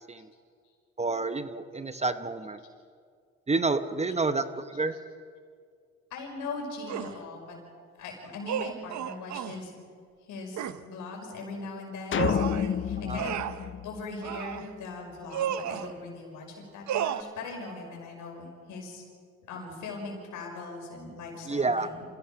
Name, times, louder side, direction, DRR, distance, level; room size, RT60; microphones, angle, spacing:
voice 1, 1.0-2.6 3.5-5.0 13.0-13.2 21.5-21.9, right 3 dB, 20° right, 10 dB, 0.9 m, -29 dB
voice 2, 6.1-7.6 8.0-9.7 10.2-13.4 13.8-19.0 19.5-22.0, left 3 dB, 85° left, 0 dB, 5.7 m, -40 dB
sound 1, 6.9-7.2 8.5-9.6 10.6-10.8 12.1-12.7 13.2-13.7 14.2-14.7 15.3-15.9 16.9-17.2, right 9 dB, 65° right, 0.9 m, -32 dB
sound 2, 12.1-14.6, left 8 dB, 40° left, 0.6 m, -29 dB
27.5 x 16.5 x 5.8 m, 2.1 s
cardioid pair, 90°, 30 cm